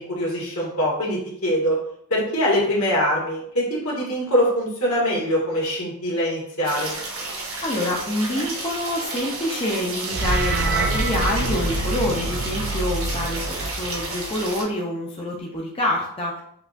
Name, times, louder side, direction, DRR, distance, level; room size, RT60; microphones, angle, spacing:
voice 1, 0.0-1.8 2.1-6.9, equal, 80° left, -5 dB, 1.5 m, -23 dB
sound 1, 6.6-14.6, right 2 dB, 65° right, 1.0 m, -32 dB
voice 2, 7.3-16.4, left 1 dB, 25° left, -3 dB, 0.5 m, -27 dB
sound 2, 10.0-14.4, right 2 dB, 45° right, 0.4 m, -26 dB
5.6 x 2.3 x 2.4 m, 0.67 s
head